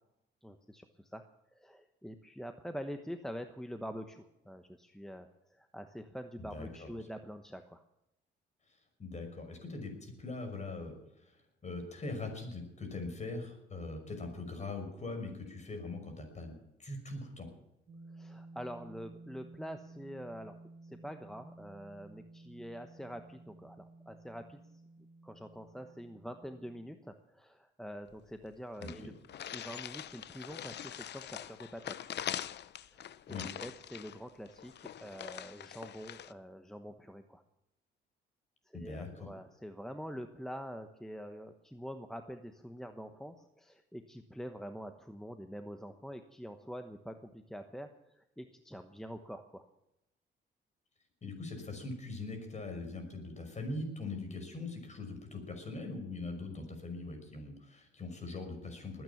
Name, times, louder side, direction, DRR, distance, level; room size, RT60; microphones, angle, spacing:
voice 1, 0.4-1.2 1.5-7.8 18.1-20.5 20.8-24.6 25.2-29.1 29.5-32.1 32.8-37.4 38.6-49.6, equal, ahead, 7 dB, 1.1 m, -45 dB
voice 2, 6.5-6.9 9.0-17.5 28.8-29.1 33.3-33.5 38.7-39.3 51.2-59.0, left 2 dB, 35° left, 5 dB, 5.9 m, -42 dB
sound 1, 17.9-26.9, right 2 dB, 45° right, 1.8 m, -54 dB
sound 2, 28.1-28.2 28.4-28.5 28.8-36.3, left 10 dB, 60° left, 0.7 m, -43 dB
20.5 x 9.4 x 7.2 m, 0.87 s
cardioid pair, 90°, 20 cm